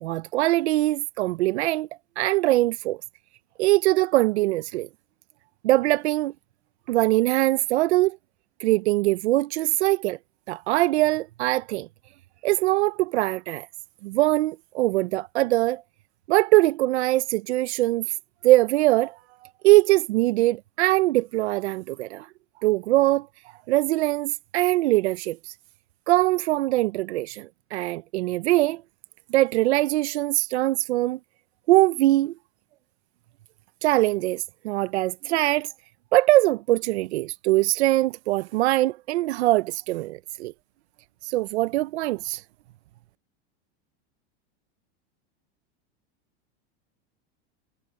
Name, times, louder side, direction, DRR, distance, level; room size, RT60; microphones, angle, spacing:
voice 1, 0.0-1.9 2.2-3.0 3.6-4.9 5.6-6.3 6.9-8.2 8.6-10.2 10.5-11.9 12.4-13.7 14.0-15.8 16.3-18.1 18.4-19.2 19.6-22.3 22.6-23.3 23.7-25.5 26.1-28.8 29.3-31.2 31.7-32.3 33.8-35.7 36.1-40.5 41.2-42.4, right 17 dB, 85° right, 0.8 m, -22 dB
supercardioid pair, 140°, 33 cm